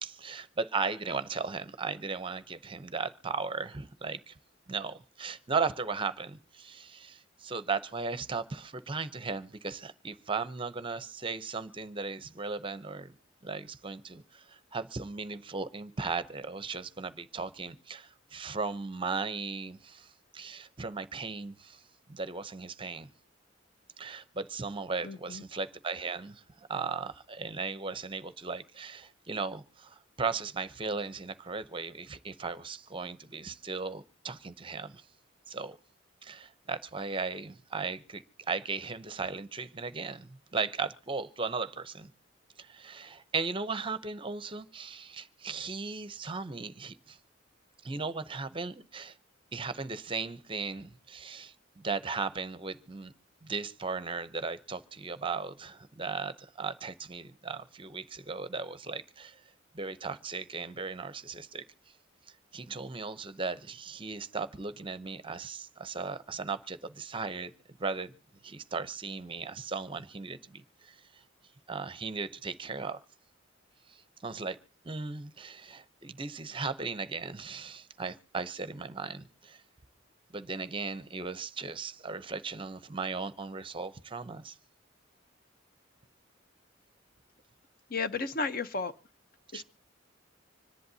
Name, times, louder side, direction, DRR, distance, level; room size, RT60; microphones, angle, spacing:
voice 1, 0.0-4.4 4.7-13.1 13.4-21.8 22.1-23.1 24.0-35.0 35.5-35.8 36.2-42.1 42.6-47.2 47.8-49.1 49.5-53.1 53.4-59.4 59.7-61.6 62.5-67.5 67.8-68.1 68.4-71.2 71.7-73.0 73.9-74.6 74.8-79.6 80.3-84.6 89.5-89.6, right 4 dB, 25° right, 0.7 m, -37 dB
voice 2, 25.0-25.4 87.9-88.9 89.5-89.6, left 4 dB, 45° left, 0.8 m, -33 dB
25.5 x 11.0 x 2.7 m
head